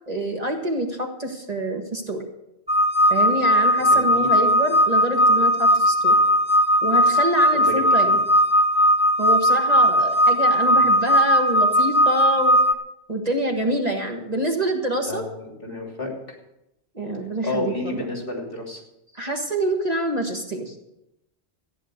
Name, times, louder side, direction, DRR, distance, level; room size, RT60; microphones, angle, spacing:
voice 1, 0.1-2.2 3.1-6.2 6.8-8.2 9.2-12.6 13.1-15.3 16.9-18.1 19.1-20.8, right 1 dB, 35° right, 3 dB, 1.7 m, -26 dB
sound 1, 2.7-12.7, equal, 5° right, 0.7 m, -18 dB
voice 2, 3.8-4.3 7.5-7.7 8.0-8.2 10.7-10.9 15.1-15.2 15.6-16.4 17.4-18.8, left 2 dB, 55° left, 0 dB, 3.3 m, -31 dB
14.5 x 9.8 x 6.6 m, 0.87 s
omnidirectional pair, 1.1 m